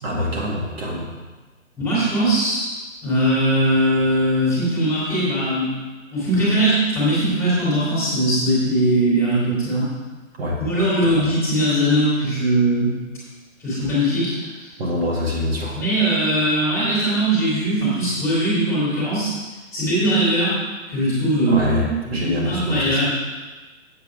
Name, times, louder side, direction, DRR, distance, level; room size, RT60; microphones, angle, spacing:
voice 1, 0.0-1.1 10.4-10.6 11.0-11.3 14.8-15.8 21.5-23.1, left 1 dB, 45° right, -4 dB, 2.2 m, -25 dB
voice 2, 1.8-2.6 3.0-5.7 6.1-9.9 10.6-12.9 13.6-14.7 15.7-19.3 19.7-20.6 20.9-23.1, right 1 dB, 5° left, -8 dB, 2.8 m, -20 dB
8.0 x 7.4 x 4.9 m, 1.2 s
figure-of-eight pair, 135°, 40 cm